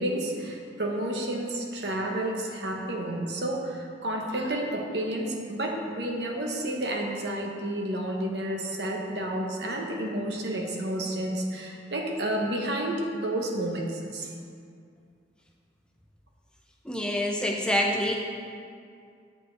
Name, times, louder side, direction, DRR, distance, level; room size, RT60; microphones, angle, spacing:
voice 1, 0.0-14.3, right 1 dB, 65° right, 1 dB, 1.0 m, -30 dB
voice 2, 16.9-18.1, left 1 dB, 5° left, 0 dB, 0.5 m, -26 dB
8.4 x 7.4 x 3.3 m, 2.2 s
head